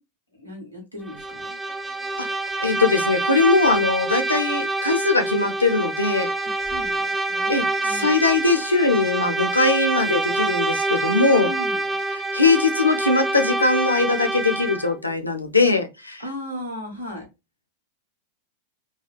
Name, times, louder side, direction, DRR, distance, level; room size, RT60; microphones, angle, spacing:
voice 1, 0.4-1.6 6.6-7.5 7.8-8.2 11.4-12.0 16.2-17.3, left 1 dB, 90° right, 1.3 m, -36 dB
Bowed string instrument, 1.1-15.0, right 2 dB, 10° right, 0.4 m, -26 dB
voice 2, 2.6-6.3 7.5-11.5 12.1-16.2, left 3 dB, 80° left, 0.6 m, -21 dB
3.3 x 2.3 x 2.3 m
figure-of-eight pair, 90°, 0 cm